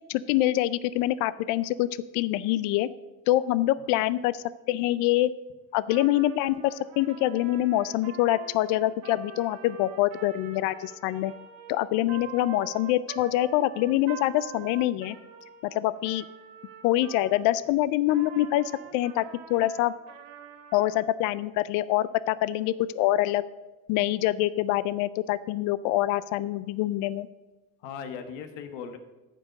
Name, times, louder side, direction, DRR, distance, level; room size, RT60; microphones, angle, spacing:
voice 1, 0.1-1.9 2.1-2.9 3.3-5.3 5.7-11.3 11.7-15.2 15.7-16.3 16.8-19.9 20.7-23.4 23.9-27.3, left 15 dB, 55° left, 16 dB, 0.4 m, -25 dB
Trumpet, 5.8-17.6 18.1-21.1, right 8 dB, 65° right, 1.8 m, -46 dB
voice 2, 27.8-29.0, left 7 dB, 85° left, 7 dB, 1.3 m, -39 dB
14.5 x 5.3 x 6.2 m, 1.1 s
cardioid pair, 165°, 37 cm